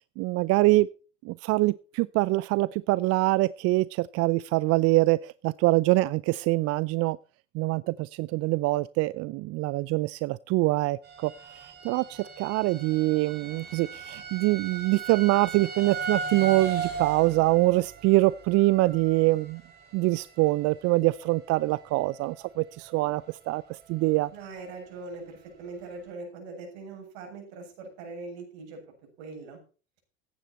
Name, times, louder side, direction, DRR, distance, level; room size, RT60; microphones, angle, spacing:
voice 1, 0.2-0.9 1.2-7.2 7.5-19.6 19.9-24.3, right 20 dB, 45° right, 19 dB, 0.5 m, -24 dB
sound 1, 11.0-21.7 22.0-22.5 23.0-23.1 23.5-23.6, right 5 dB, 30° right, 6.0 m, -38 dB
voice 2, 24.3-28.8 29.2-29.6, right 3 dB, 65° right, 3 dB, 7.2 m, -41 dB
15.0 x 10.0 x 4.3 m, 0.36 s
hypercardioid pair, 85°, 35 cm